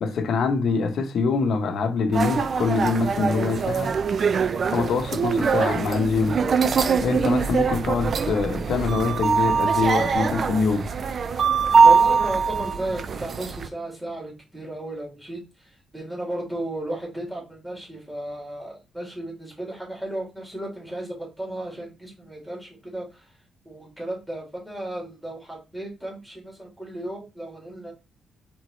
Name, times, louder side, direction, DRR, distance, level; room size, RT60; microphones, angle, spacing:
voice 1, 0.0-4.0 4.7-6.4 7.0-10.9, left 4 dB, 65° left, 0.7 m, -24 dB
sound 1, 2.1-13.7, right 5 dB, 45° right, 0.4 m, -22 dB
voice 2, 11.8-23.3 23.6-27.9, right 1 dB, 5° right, 2.5 m, -34 dB
4.4 x 3.6 x 3.1 m
cardioid pair, 120°, 0 cm